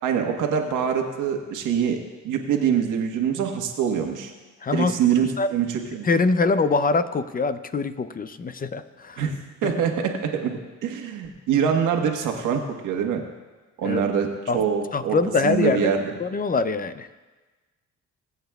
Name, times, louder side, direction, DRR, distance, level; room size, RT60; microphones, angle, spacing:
voice 1, 0.0-2.0 2.2-4.3 4.7-6.1 9.2-13.2 13.8-14.3 14.5-15.2 15.4-16.0, right 7 dB, 90° right, 3 dB, 1.4 m, -24 dB
voice 2, 4.6-4.9 5.4-5.5 6.0-9.3 9.6-9.7 13.8-14.1 14.5-14.6 14.9-15.9 16.2-17.1, left 4 dB, 30° left, 12 dB, 0.5 m, -23 dB
23.0 x 8.2 x 2.3 m, 1.2 s
cardioid pair, 90°, 30 cm